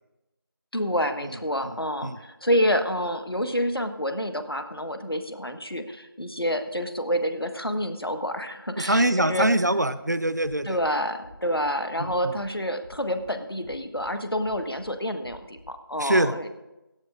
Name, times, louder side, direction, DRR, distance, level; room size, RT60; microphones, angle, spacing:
voice 1, 0.7-9.5 10.6-16.5, equal, 85° left, 7 dB, 1.5 m, -28 dB
voice 2, 8.8-10.8 12.0-12.3 16.0-16.5, right 1 dB, 50° right, 14 dB, 0.6 m, -24 dB
sound 1, 10.4-10.8 11.2-11.6 12.0-12.4 12.8-13.3 13.6-14.1 14.4-14.9 15.2-15.7, equal, 20° right, 1.3 m, -49 dB
17.0 x 13.5 x 2.6 m, 0.98 s
figure-of-eight pair, 175°, 12 cm